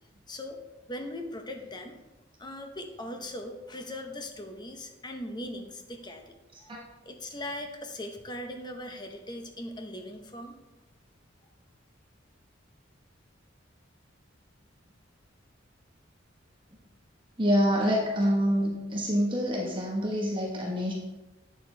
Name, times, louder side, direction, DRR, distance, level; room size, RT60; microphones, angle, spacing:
voice 1, 0.3-0.6 0.9-2.0 2.4-10.5, left 1 dB, 20° left, 4 dB, 0.8 m, -40 dB
voice 2, 17.4-20.9, equal, 25° right, -2 dB, 1.2 m, -26 dB
8.7 x 6.7 x 3.3 m, 1.1 s
head